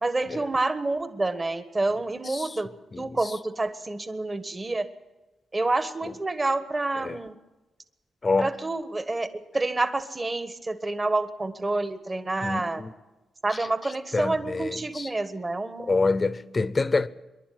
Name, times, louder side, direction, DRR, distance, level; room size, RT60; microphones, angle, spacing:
voice 1, 0.0-2.7 3.0-4.8 5.5-7.3 8.4-9.3 9.5-12.8 13.4-16.0, right 2 dB, 25° right, 1.4 m, -28 dB
voice 2, 2.3-2.6 2.9-3.3 7.0-7.2 8.2-8.5 12.4-12.9 13.5-15.1 15.8-17.1, left 3 dB, 30° left, 0.8 m, -27 dB
24.0 x 11.5 x 9.4 m
cardioid pair, 105°, 0 cm